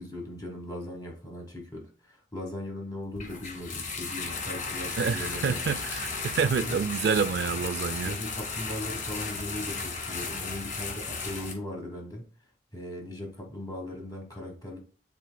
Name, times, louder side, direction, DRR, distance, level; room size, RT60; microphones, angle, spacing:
voice 1, 0.0-5.8 6.6-6.8 8.0-12.3 12.7-14.8, left 1 dB, 25° left, 1.3 m, -38 dB
sound 1, 3.2-11.5, left 4 dB, 50° left, 1.7 m, -35 dB
voice 2, 5.0-8.2, right 5 dB, 65° right, 0.4 m, -28 dB
10.5 x 4.1 x 2.2 m
head